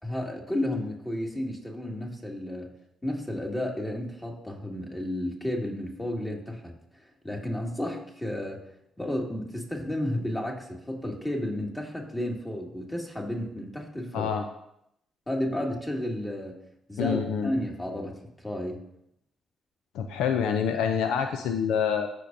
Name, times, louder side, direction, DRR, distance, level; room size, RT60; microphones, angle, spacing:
voice 1, 0.0-8.6 9.0-14.3 15.3-16.6 16.9-18.9, left 1 dB, 15° left, 0 dB, 2.3 m, -32 dB
voice 2, 14.1-14.4 17.0-17.5 19.9-22.1, left 7 dB, 75° left, 6 dB, 0.5 m, -26 dB
14.0 x 5.4 x 2.7 m, 0.77 s
hypercardioid pair, 45°, 0 cm